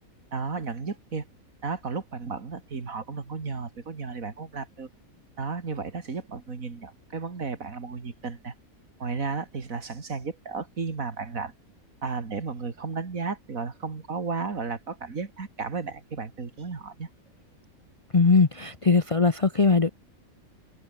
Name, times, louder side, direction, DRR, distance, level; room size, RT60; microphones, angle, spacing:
voice 1, 0.3-1.2 1.6-4.9 5.4-8.5 9.0-11.5 12.0-17.1, right 4 dB, 70° right, 2.8 m, -33 dB
voice 2, 18.1-19.9, left 4 dB, 30° left, 0.8 m, -20 dB
omnidirectional pair, 1.5 m